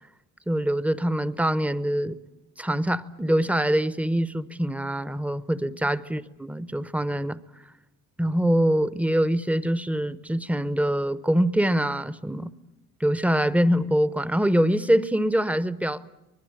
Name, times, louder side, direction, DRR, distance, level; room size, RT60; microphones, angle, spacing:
voice 1, 0.5-2.2 2.6-7.4 8.2-12.5 13.0-16.1, equal, 5° right, 15 dB, 1.0 m, -24 dB
25.0 x 20.5 x 8.9 m, 0.94 s
cardioid pair, 90°, 30 cm